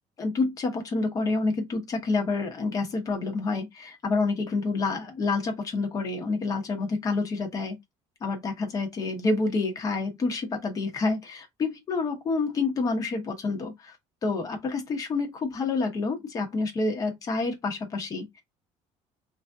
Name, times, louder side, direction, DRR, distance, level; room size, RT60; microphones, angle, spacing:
voice 1, 0.2-7.8 8.2-13.9 14.2-18.4, left 3 dB, 30° left, 0.9 m, -28 dB
3.1 x 2.7 x 3.5 m
cardioid pair, 175°, 13 cm